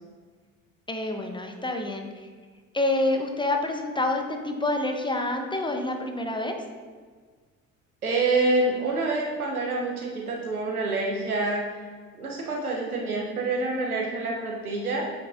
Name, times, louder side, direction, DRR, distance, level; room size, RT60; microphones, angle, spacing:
voice 1, 0.9-2.3 2.7-6.6, left 2 dB, 10° left, 4 dB, 0.6 m, -27 dB
voice 2, 8.0-11.8 12.1-15.0, right 2 dB, 90° right, -1 dB, 0.8 m, -27 dB
8.3 x 4.6 x 2.4 m, 1.5 s
figure-of-eight pair, 55°, 42 cm